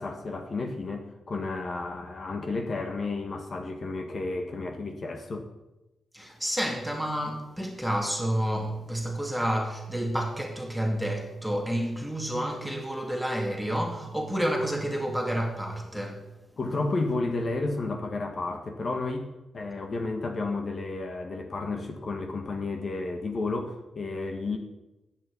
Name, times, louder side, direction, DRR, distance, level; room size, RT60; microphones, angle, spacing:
voice 1, 0.0-5.5 16.6-19.3 19.5-24.6, left 3 dB, 45° left, 1.7 m, -32 dB
voice 2, 6.1-16.3, equal, ahead, 2.3 m, -30 dB
10.5 x 9.1 x 8.5 m
cardioid pair, 115°, 0 cm